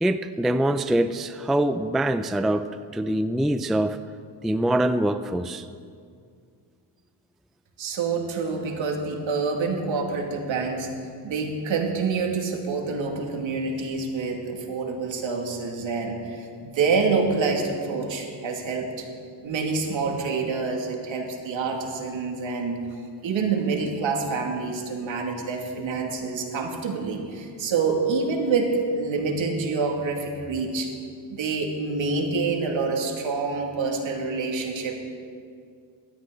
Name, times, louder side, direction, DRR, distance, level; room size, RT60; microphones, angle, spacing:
voice 1, 0.0-4.0 4.4-5.7, right 1 dB, ahead, 10 dB, 0.4 m, -24 dB
voice 2, 7.8-10.9 11.2-19.1 19.4-22.8 23.2-30.9 31.3-34.9, right 4 dB, 65° right, 1 dB, 2.7 m, -27 dB
19.5 x 13.5 x 4.0 m, 2.3 s
cardioid pair, 75°, 49 cm